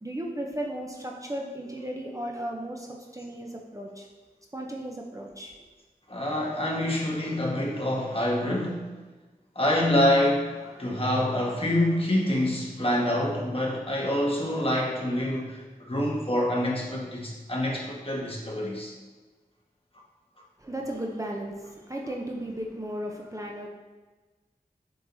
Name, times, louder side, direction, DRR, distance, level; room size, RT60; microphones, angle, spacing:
voice 1, 0.0-2.9 3.1-4.1 4.5-5.5 10.6-11.1 20.6-23.7, right 1 dB, 20° right, -1 dB, 0.7 m, -35 dB
voice 2, 6.1-8.9 9.5-15.6 15.9-18.9, left 1 dB, 35° left, -3 dB, 1.4 m, -26 dB
7.4 x 4.6 x 2.7 m, 1.3 s
wide cardioid pair, 55°, 15 cm